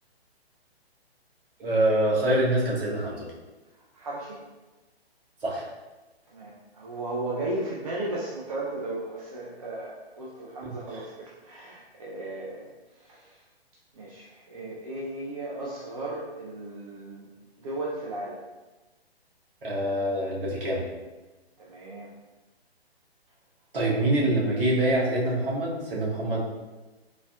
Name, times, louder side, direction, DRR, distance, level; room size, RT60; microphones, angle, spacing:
voice 1, 1.6-3.3 5.4-5.7 10.6-10.7 19.6-20.8 23.7-26.4, right 1 dB, 60° right, -5 dB, 1.3 m, -25 dB
voice 2, 3.9-4.4 6.3-13.4 13.9-17.3 17.6-18.4 21.6-22.1, right 2 dB, 35° right, -5 dB, 0.5 m, -35 dB
3.8 x 2.7 x 2.4 m, 1.1 s
figure-of-eight pair, 130°, 32 cm